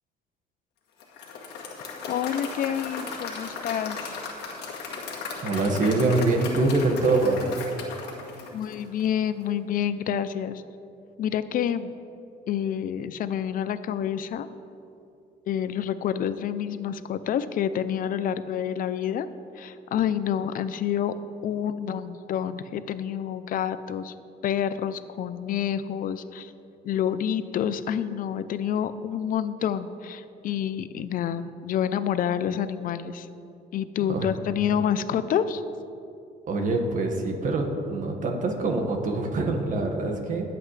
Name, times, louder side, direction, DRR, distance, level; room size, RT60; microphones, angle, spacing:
Applause / Crowd, 1.0-9.2, left 4 dB, 85° left, 1.8 m, -36 dB
voice 1, 2.1-4.2 8.5-10.6 11.2-11.9 12.5-14.5 15.5-19.3 19.6-21.1 21.4-24.1 24.4-26.5 26.8-33.3 33.7-35.6, left 9 dB, 55° left, 13 dB, 0.6 m, -28 dB
voice 2, 5.4-7.4 34.1-34.3 36.5-40.6, right 2 dB, 50° right, 3 dB, 1.8 m, -24 dB
22.0 x 7.9 x 3.3 m, 2.7 s
cardioid pair, 110°, 17 cm